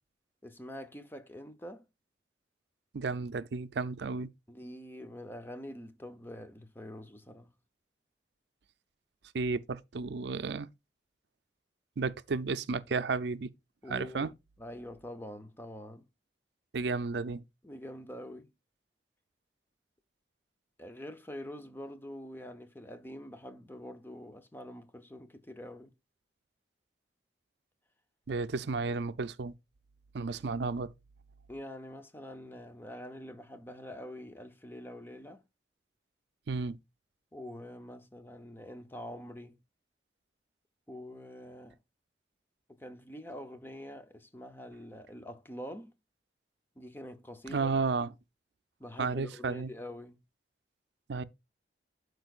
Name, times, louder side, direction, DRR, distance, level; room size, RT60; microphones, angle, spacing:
voice 1, 0.4-1.9 4.5-7.5 13.8-14.3 14.6-16.0 17.6-18.5 20.8-25.9 31.5-35.4 37.3-39.6 40.9-41.8 42.7-45.9 46.8-47.7 48.8-50.2, left 1 dB, 10° left, 0.7 m, -45 dB
voice 2, 2.9-4.3 9.3-10.7 12.0-13.5 13.9-14.3 16.7-17.4 28.3-29.5 30.1-30.9 36.5-36.8 47.5-48.1 49.0-49.7 51.1-51.2, right 4 dB, 75° right, 0.5 m, -32 dB
12.5 x 4.6 x 2.4 m
head